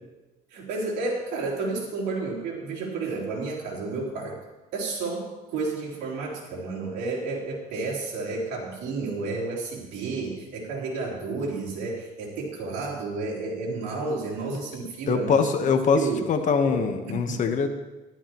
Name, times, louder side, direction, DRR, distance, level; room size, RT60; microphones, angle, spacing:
voice 1, 0.5-4.3 4.7-15.7 15.9-16.3 16.6-16.8 17.1-17.4, right 3 dB, 85° right, -4 dB, 3.5 m, -31 dB
voice 2, 15.1-17.7, left 5 dB, 50° left, 7 dB, 1.1 m, -23 dB
13.5 x 12.0 x 3.0 m, 1.1 s
cardioid pair, 110°, 17 cm